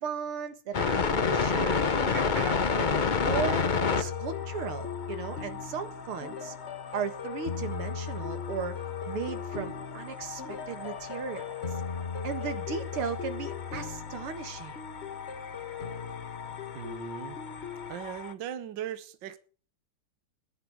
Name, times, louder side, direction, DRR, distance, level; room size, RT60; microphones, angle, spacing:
voice 1, 0.0-3.7 4.0-6.5 6.9-11.5 12.2-14.8, right 6 dB, 80° right, 2.5 m, -36 dB
sound 1, 0.7-18.3, left 5 dB, 75° left, 0.4 m, -33 dB
sound 2, 1.2-17.9, left 6 dB, 35° left, 1.2 m, -38 dB
voice 2, 16.7-17.4 17.9-19.4, right 10 dB, 65° right, 1.5 m, -38 dB
16.0 x 10.5 x 6.4 m
omnidirectional pair, 2.4 m